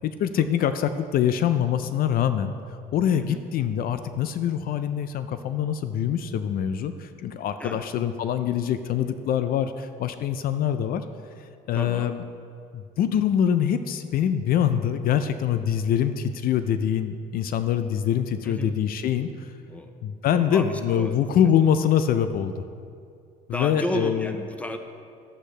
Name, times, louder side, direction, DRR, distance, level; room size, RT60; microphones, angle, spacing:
voice 1, 0.0-2.5 2.9-11.0 11.7-12.2 12.7-19.5 20.0-22.6 23.5-24.3, left 9 dB, 60° left, 10 dB, 0.5 m, -24 dB
voice 2, 11.7-12.1 18.4-18.7 19.7-20.0 20.3-21.1 23.5-24.8, left 1 dB, 10° left, 6 dB, 0.7 m, -33 dB
12.0 x 8.2 x 3.3 m, 2.4 s
cardioid pair, 110°, 17 cm